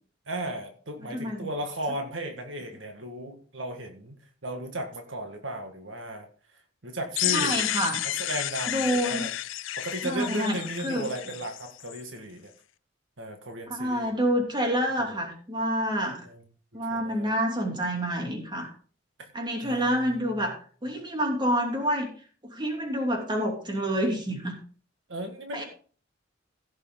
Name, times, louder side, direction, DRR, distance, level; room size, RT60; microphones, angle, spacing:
voice 1, 0.3-6.3 6.8-7.7 8.0-9.3 9.8-12.5 13.2-14.1 15.1-15.2 16.2-16.4 16.9-17.4 19.2-19.3 19.6-20.4 25.1-25.6, right 1 dB, 80° right, 4 dB, 1.9 m, -35 dB
voice 2, 1.0-1.5 7.3-8.0 8.7-9.2 10.0-10.6 10.8-11.1 13.7-16.2 16.7-18.7 19.3-22.1 22.4-24.6 25.5-25.6, equal, 25° right, 1 dB, 2.9 m, -28 dB
sound 1, 7.2-12.0, left 14 dB, 80° left, 0.5 m, -31 dB
16.0 x 6.7 x 3.9 m, 0.42 s
head